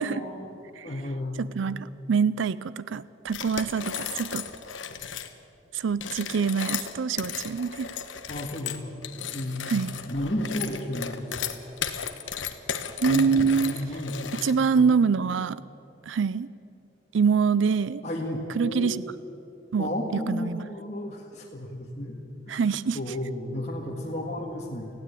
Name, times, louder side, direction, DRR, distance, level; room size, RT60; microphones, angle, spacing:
voice 1, 0.0-0.6 0.8-1.4 8.3-8.9 9.3-9.7 10.1-11.5 13.1-15.0 18.0-19.0 19.8-22.1 22.5-22.7 22.9-24.9, left 1 dB, 35° left, -2 dB, 1.8 m, -33 dB
voice 2, 1.4-4.5 5.7-7.9 9.7-9.9 13.0-13.7 14.4-15.6 16.1-16.5 17.1-18.0 18.6-19.0 19.7-19.9 20.3-20.6 22.5-23.0, right 5 dB, 85° right, 18 dB, 0.4 m, -25 dB
sound 1, 3.3-5.3 5.9-14.8, left 7 dB, 90° left, 1.2 m, -35 dB
19.5 x 16.0 x 8.4 m, 2.7 s
head